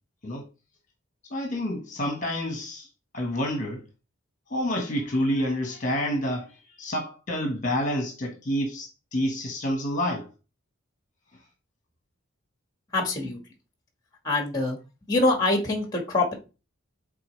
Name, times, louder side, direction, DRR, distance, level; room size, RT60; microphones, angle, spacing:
voice 1, 1.3-2.9 3.1-3.8 4.5-10.3, equal, 35° left, 1.3 m, -28 dB
voice 2, 12.9-13.4 14.2-14.8 15.1-16.3, left 2 dB, 15° left, 1.5 m, -24 dB
8.5 x 4.0 x 3.2 m
head